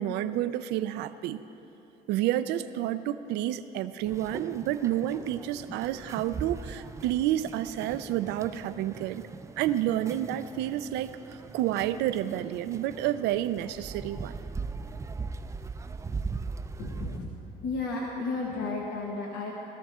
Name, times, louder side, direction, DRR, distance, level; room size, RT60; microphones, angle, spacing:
voice 1, 0.0-1.4 2.1-9.2 9.6-14.3, right 12 dB, 90° right, 12 dB, 0.4 m, -30 dB
sound 1, 4.0-17.2, right 4 dB, 15° right, 0.4 m, -40 dB
voice 2, 16.8-17.3 17.6-19.5, left 3 dB, 80° left, -2 dB, 1.5 m, -33 dB
17.0 x 13.5 x 3.6 m, 2.9 s
cardioid pair, 110°, 17 cm